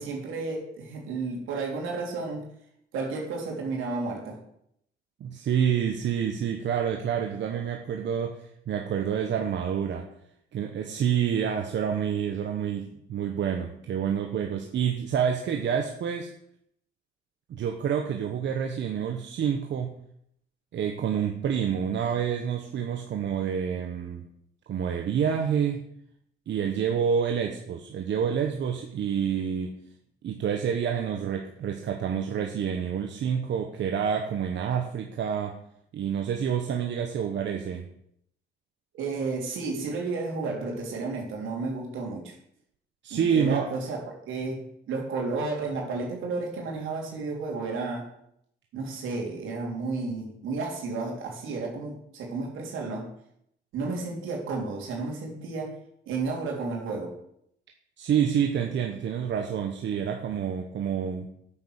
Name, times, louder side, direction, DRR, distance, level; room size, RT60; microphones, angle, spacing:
voice 1, 0.0-2.4 2.9-4.4 38.9-42.3 43.1-48.1 48.7-53.1 53.7-55.7 56.1-57.1, right 3 dB, 85° right, 0 dB, 3.8 m, -32 dB
voice 2, 5.2-10.1 10.5-16.3 17.5-19.9 20.7-24.3 24.7-25.8 26.5-29.8 30.2-35.6 35.9-37.9 43.0-43.7 58.0-61.3, right 8 dB, 65° right, 3 dB, 1.3 m, -28 dB
9.5 x 8.1 x 6.6 m, 0.73 s
cardioid pair, 90°, 20 cm